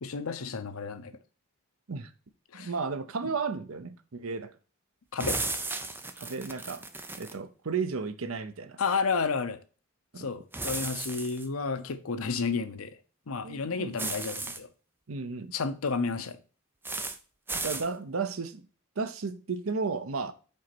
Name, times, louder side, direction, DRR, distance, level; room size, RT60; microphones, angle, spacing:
voice 1, 0.0-1.1 2.5-2.7 3.2-3.3 5.1-5.4 8.8-9.6 10.2-12.9 13.3-14.7 15.5-16.4, left 4 dB, 75° left, 0.7 m, -31 dB
voice 2, 2.5-4.5 6.2-6.8 7.2-8.8 10.1-10.3 13.4-14.0 15.1-15.5 17.5-18.7 19.0-20.3, right 4 dB, 70° right, 0.7 m, -33 dB
sound 1, 5.2-7.4 10.5-11.5 14.0-14.6 16.8-17.2 17.5-17.9, right 3 dB, 10° right, 0.6 m, -34 dB
5.3 x 4.2 x 5.9 m
head